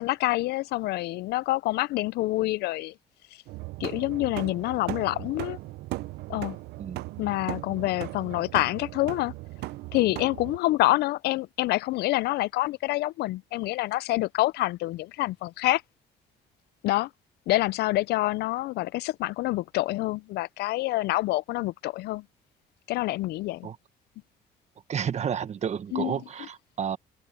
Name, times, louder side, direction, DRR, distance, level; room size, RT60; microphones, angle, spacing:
voice 1, 0.0-2.9 3.8-5.6 6.3-6.6 7.2-9.3 9.9-15.8 16.8-17.1 17.5-22.2 22.9-23.7 25.9-26.2, left 18 dB, 75° left, 0.4 m, -27 dB
sound 1, 3.5-10.6, right 19 dB, 75° right, 0.5 m, -38 dB
voice 2, 24.9-27.0, right 8 dB, 40° right, 1.3 m, -31 dB
open air
cardioid pair, 110°, 17 cm